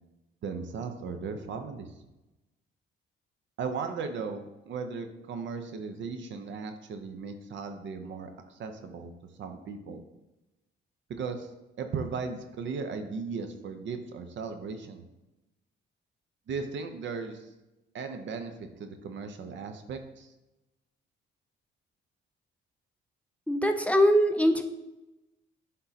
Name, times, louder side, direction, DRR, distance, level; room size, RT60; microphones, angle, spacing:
voice 1, 0.4-1.9 3.6-8.3 8.6-9.1 9.4-10.0 11.2-11.5 11.8-15.0 16.5-17.4 17.9-20.3, right 5 dB, 70° right, 7 dB, 0.7 m, -36 dB
voice 2, 23.5-24.6, equal, 5° left, 5 dB, 0.5 m, -22 dB
9.7 x 3.7 x 2.8 m, 0.99 s
cardioid pair, 90°, 20 cm